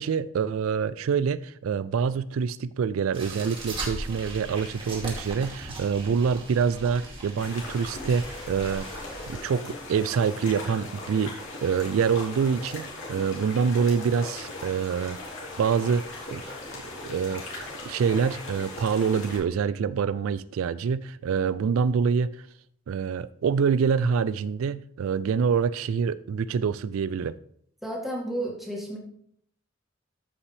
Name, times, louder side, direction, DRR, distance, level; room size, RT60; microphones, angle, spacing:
voice 1, 0.0-8.9 9.3-11.3 11.6-15.2 15.6-16.0 16.3-16.5 17.0-22.5 22.9-27.4, right 6 dB, 90° right, 0.3 m, -26 dB
sound 1, 3.1-9.4, right 2 dB, 25° right, 2.3 m, -39 dB
sound 2, 7.4-19.4, left 2 dB, 70° left, 2.8 m, -39 dB
voice 2, 27.8-29.0, right 1 dB, ahead, 2.0 m, -32 dB
13.5 x 5.4 x 3.3 m
head